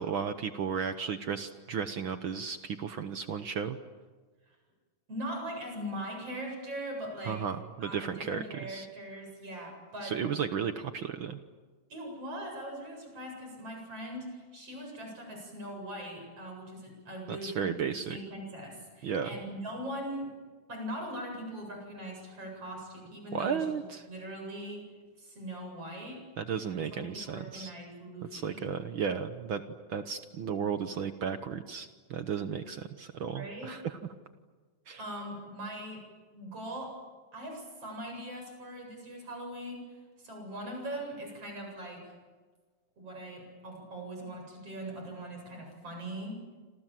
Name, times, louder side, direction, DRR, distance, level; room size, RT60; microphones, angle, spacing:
voice 1, 0.0-3.8 7.3-8.9 10.0-11.4 17.3-18.2 19.0-19.3 23.3-24.0 26.4-27.7 28.3-29.6 29.9-34.0 34.9-35.0, right 7 dB, 75° right, 9 dB, 1.2 m, -34 dB
voice 2, 5.1-7.4 7.8-10.1 11.9-17.8 18.1-20.3 20.7-23.8 24.1-24.8 25.2-26.2 26.9-28.6 33.3-33.7 35.0-36.0 36.3-36.9 37.3-39.8 40.2-42.0 43.0-46.4, right 1 dB, 45° right, 2 dB, 9.1 m, -41 dB
28.0 x 27.0 x 7.6 m, 1.4 s
omnidirectional pair, 3.7 m